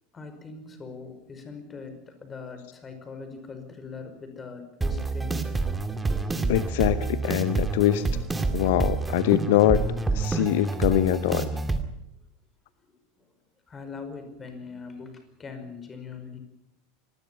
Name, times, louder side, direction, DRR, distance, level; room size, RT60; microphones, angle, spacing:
voice 1, 0.1-5.6 12.9-13.0 13.7-16.4, left 4 dB, 20° left, 8 dB, 5.3 m, -41 dB
sound 1, 4.8-11.8, right 3 dB, 10° right, 2.3 m, -28 dB
voice 2, 6.5-8.1 8.5-9.8 10.1-11.5, left 14 dB, 60° left, 14 dB, 0.9 m, -23 dB
25.5 x 20.0 x 5.7 m, 0.85 s
figure-of-eight pair, 80°, 0 cm